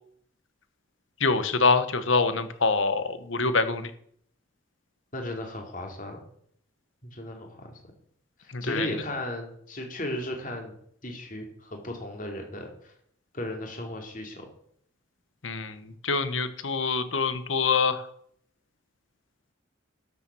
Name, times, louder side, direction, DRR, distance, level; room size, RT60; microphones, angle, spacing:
voice 1, 1.2-3.9 8.5-8.9 15.4-18.1, left 4 dB, 75° left, 11 dB, 1.2 m, -25 dB
voice 2, 5.1-6.2 7.0-7.8 8.4-10.8 11.0-12.9 13.3-14.5, left 1 dB, 40° left, 2 dB, 2.8 m, -35 dB
12.5 x 7.2 x 6.2 m, 0.65 s
head